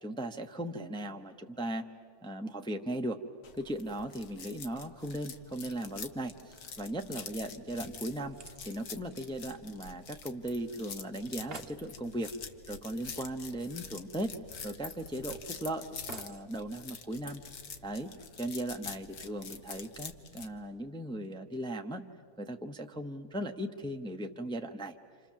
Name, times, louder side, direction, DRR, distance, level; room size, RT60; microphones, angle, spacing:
voice 1, 0.0-1.8 2.2-3.2 3.5-8.4 8.6-12.3 12.7-14.4 14.6-17.4 17.8-18.1 18.4-22.0 22.4-25.0, right 1 dB, 5° left, 5 dB, 0.6 m, -37 dB
sound 1, 3.4-20.5, left 6 dB, 70° left, 1.7 m, -46 dB
sound 2, 7.7-10.3 10.6-10.7 11.0-11.1 11.3-11.8 13.3-13.4 13.8-13.9 14.5-15.5 16.1-16.5 17.2-17.3, right 5 dB, 45° right, 1.1 m, -51 dB
28.5 x 27.5 x 7.5 m, 2.1 s
omnidirectional pair, 1.6 m